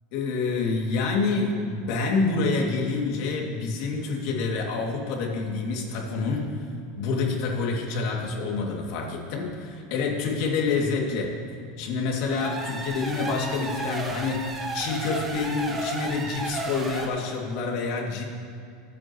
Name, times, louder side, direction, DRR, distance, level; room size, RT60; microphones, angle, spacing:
voice 1, 0.1-6.6 7.0-11.3 11.8-18.2, left 4 dB, 60° left, -1 dB, 2.5 m, -27 dB
sound 1, 12.2-17.1, right 2 dB, 15° right, 1.3 m, -33 dB
24.0 x 8.7 x 3.1 m, 2.4 s
supercardioid pair, 130°, 0 cm